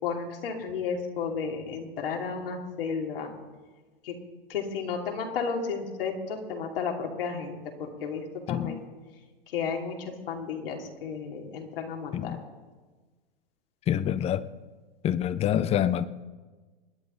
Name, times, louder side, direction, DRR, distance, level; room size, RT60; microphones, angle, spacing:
voice 1, 0.0-3.3 4.0-4.1 4.5-8.8 9.5-12.4, left 5 dB, 70° left, 1 dB, 2.8 m, -33 dB
voice 2, 8.5-8.8 12.1-12.4 13.9-14.4 15.0-16.1, left 10 dB, 20° left, 16 dB, 0.6 m, -26 dB
27.0 x 10.0 x 3.9 m, 1.3 s
hypercardioid pair, 115°, 29 cm